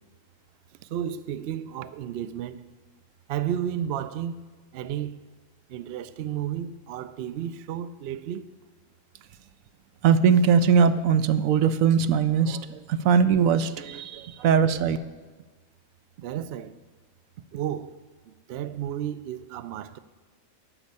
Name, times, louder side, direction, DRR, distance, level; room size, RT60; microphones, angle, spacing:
voice 1, 0.9-2.6 3.3-4.4 4.7-5.2 5.7-8.5 16.2-16.7 17.5-18.0 18.3-20.0, right 10 dB, 65° right, 0.7 m, -32 dB
voice 2, 10.0-15.0, right 6 dB, 80° right, 1.0 m, -21 dB
13.0 x 5.4 x 8.3 m
omnidirectional pair, 1.4 m